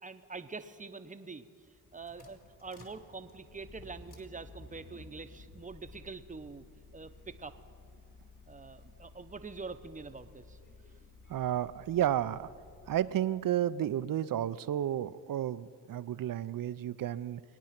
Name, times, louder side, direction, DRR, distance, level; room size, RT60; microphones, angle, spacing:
voice 1, 0.0-1.5 1.9-6.6 6.9-7.5 8.5-10.6, right 4 dB, 20° right, 10 dB, 0.9 m, -45 dB
sound 1, 1.6-13.2, left 2 dB, 45° left, 3.2 m, -55 dB
voice 2, 11.3-12.5 12.9-17.4, right 11 dB, 50° right, 15 dB, 0.6 m, -32 dB
22.0 x 9.4 x 5.9 m, 2.2 s
supercardioid pair, 60°, 43 cm